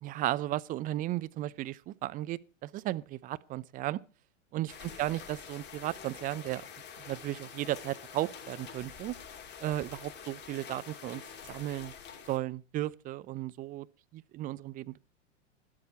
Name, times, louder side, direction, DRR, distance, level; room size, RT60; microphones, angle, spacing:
voice 1, 0.0-4.0 4.5-6.7 7.1-9.2 9.6-11.9 12.3-13.9 14.1-15.0, right 15 dB, 20° right, 0.5 m, -35 dB
sound 1, 4.7-12.4, left 7 dB, 30° left, 2.9 m, -47 dB
12.5 x 12.5 x 4.5 m
figure-of-eight pair, 90°, 37 cm